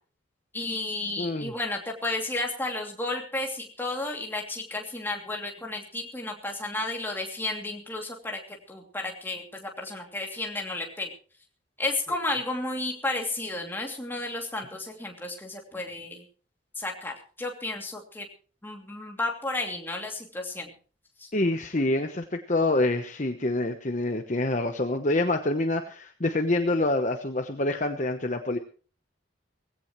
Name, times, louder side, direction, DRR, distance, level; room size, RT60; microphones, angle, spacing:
voice 1, 0.5-11.1 11.8-16.2 16.7-18.3 18.6-20.7 21.2-21.3, left 2 dB, 10° left, 1 dB, 2.8 m, -32 dB
voice 2, 1.2-1.5 21.3-28.6, left 2 dB, 40° left, 6 dB, 1.0 m, -26 dB
19.5 x 16.5 x 3.2 m, 0.40 s
head